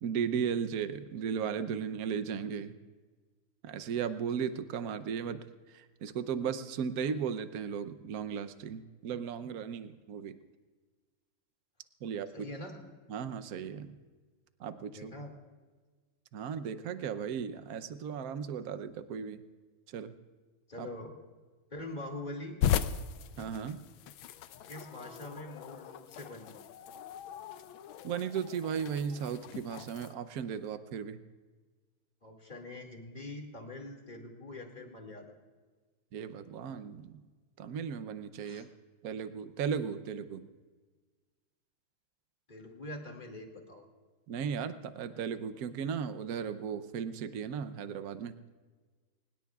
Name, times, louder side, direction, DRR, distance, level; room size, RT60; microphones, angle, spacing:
voice 1, 0.0-2.7 3.6-5.4 5.7-10.4 12.0-12.5 13.1-13.9 14.6-15.1 16.3-19.4 19.9-20.1 20.8-20.9 23.4-23.8 28.0-31.2 36.1-37.2 37.6-38.7 39.0-40.5 44.3-48.4, right 7 dB, 60° right, 10 dB, 1.0 m, -36 dB
voice 2, 12.3-12.8 14.9-15.3 20.7-21.1 21.7-22.6 24.7-26.6 32.2-35.4 38.4-38.7 42.5-43.8, left 1 dB, 20° left, 1 dB, 2.3 m, -44 dB
sound 1, 22.6-30.1, left 9 dB, 75° left, 1.4 m, -37 dB
24.5 x 20.5 x 2.4 m, 1.4 s
omnidirectional pair, 2.3 m